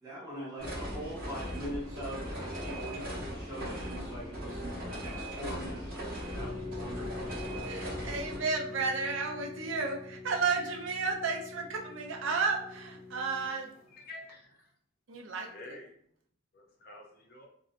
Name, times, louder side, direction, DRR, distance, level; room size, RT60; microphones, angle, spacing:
voice 1, 0.0-7.1, equal, 20° right, -8 dB, 0.9 m, -42 dB
sound 1, 0.6-8.4, equal, 45° right, 0.8 m, -39 dB
sound 2, 6.4-13.8, left 3 dB, 90° left, 0.7 m, -44 dB
voice 2, 7.7-13.7 15.1-15.5, right 4 dB, 70° right, 1 dB, 0.4 m, -32 dB
voice 3, 13.9-14.7 15.1-16.0 16.5-17.5, left 2 dB, 45° left, 1 dB, 0.5 m, -49 dB
2.6 x 2.0 x 2.4 m, 0.64 s
head